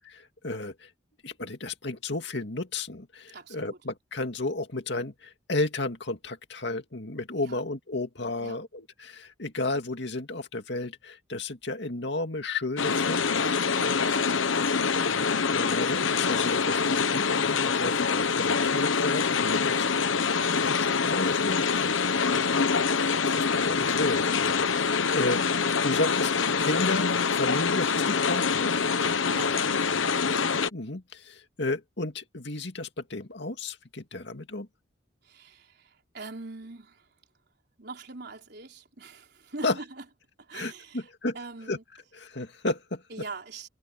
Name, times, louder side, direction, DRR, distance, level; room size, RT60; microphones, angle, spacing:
voice 1, 0.1-0.9 1.2-13.7 14.9-19.9 20.4-22.0 22.3-22.7 23.1-28.7 30.7-34.7 39.6-39.8 40.5-41.4 41.7-41.8 42.1-43.0, left 2 dB, 60° left, 2.5 m, -33 dB
voice 2, 3.3-3.8 7.4-7.6 8.4-8.6 13.7-14.6 19.6-19.9 22.4-22.7 29.1-29.9 35.2-37.1 37.8-40.0 40.4-41.1 41.3-41.8 43.1-43.7, right 3 dB, 55° right, 4.3 m, -43 dB
sound 1, 12.8-30.7, left 5 dB, 85° left, 1.1 m, -25 dB
head